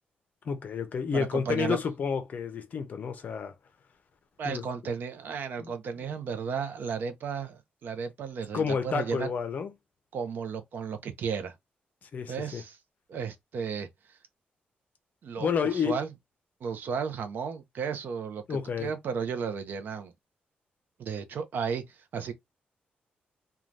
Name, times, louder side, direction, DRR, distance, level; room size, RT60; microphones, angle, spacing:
voice 1, 0.4-3.5 4.4-4.6 5.6-5.7 8.5-9.7 12.1-12.6 15.4-16.0 18.5-18.9, left 6 dB, 50° left, 0.6 m, -30 dB
voice 2, 1.1-1.8 4.4-9.3 10.1-11.5 12.3-12.8 13.1-14.2 15.2-16.1 16.6-20.1 21.0-22.3, right 6 dB, 65° right, 0.6 m, -34 dB
2.6 x 2.3 x 3.1 m
wide cardioid pair, 165°, 4 cm